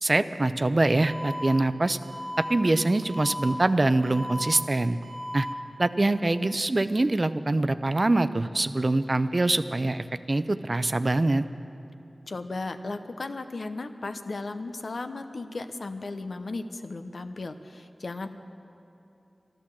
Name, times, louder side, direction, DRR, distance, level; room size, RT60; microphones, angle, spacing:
voice 1, 0.0-2.0 2.5-5.0 5.3-5.5 5.8-11.4, right 2 dB, 45° right, 12 dB, 0.5 m, -24 dB
Alarm, 1.0-1.5 2.0-2.5 3.0-3.5 4.0-4.5 5.0-5.5, equal, 70° right, 1.5 m, -36 dB
voice 2, 12.3-18.3, left 3 dB, 75° left, 8 dB, 0.7 m, -35 dB
12.5 x 12.0 x 7.3 m, 2.9 s
cardioid pair, 40°, 0 cm